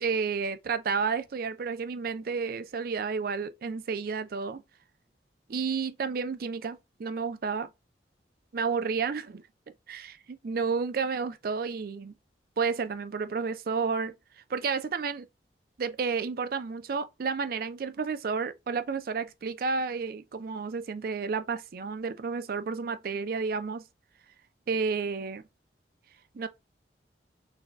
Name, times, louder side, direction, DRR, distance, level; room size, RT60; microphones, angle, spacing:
voice 1, 0.0-4.6 5.5-7.7 8.5-9.4 9.9-10.2 10.4-12.1 12.6-14.1 14.5-15.3 15.8-23.8 24.7-25.4 26.3-26.5, right 5 dB, 55° right, 0.4 m, -31 dB
4.0 x 2.2 x 2.3 m
head